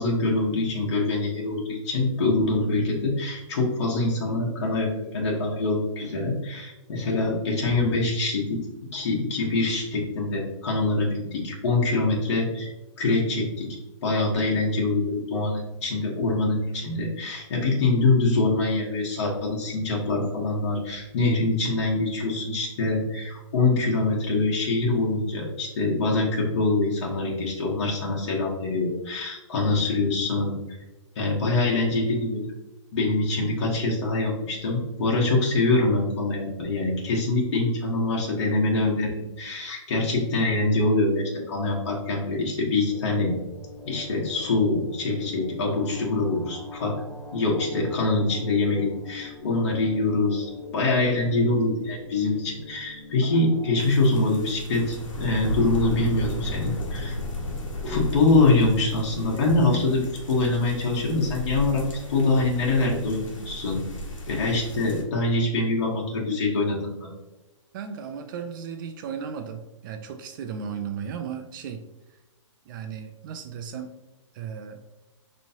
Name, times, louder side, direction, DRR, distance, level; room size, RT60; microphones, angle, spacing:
voice 1, 0.0-8.6 8.9-12.7 13.0-13.7 14.0-30.5 31.1-32.5 32.9-43.3 43.8-46.9 47.3-57.1 57.8-61.8 62.1-63.8 64.3-67.1, left 2 dB, 60° left, -3 dB, 1.3 m, -24 dB
voice 2, 2.6-3.0 67.7-71.8 72.7-73.9 74.3-74.8, right 7 dB, 40° right, 7 dB, 0.4 m, -35 dB
sound 1, 42.4-53.8, left 3 dB, ahead, 0.6 m, -43 dB
sound 2, 53.8-65.0, left 1 dB, 85° left, 1.2 m, -34 dB
5.2 x 3.1 x 2.8 m, 1.0 s
hypercardioid pair, 140°, 16 cm